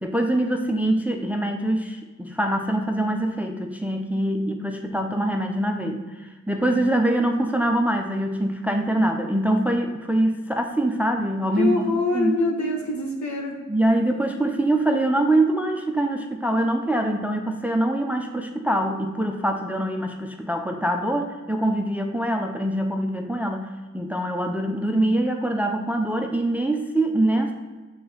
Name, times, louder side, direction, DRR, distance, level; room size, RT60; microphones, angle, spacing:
voice 1, 0.0-11.7 12.1-12.3 13.7-23.7 23.9-27.5, right 1 dB, 5° right, 4 dB, 0.5 m, -24 dB
voice 2, 11.6-13.6, left 3 dB, 65° left, 1 dB, 1.2 m, -25 dB
6.7 x 3.9 x 4.0 m, 1.3 s
cardioid pair, 80°, 30 cm